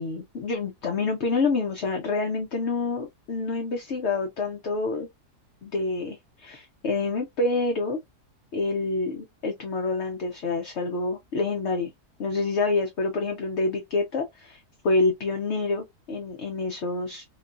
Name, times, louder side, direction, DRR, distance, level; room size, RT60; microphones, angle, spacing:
voice 1, 0.0-5.1 5.6-8.0 8.5-11.9 12.2-17.2, left 3 dB, 55° left, 0.9 m, -27 dB
5.2 x 2.3 x 2.5 m
omnidirectional pair, 1.7 m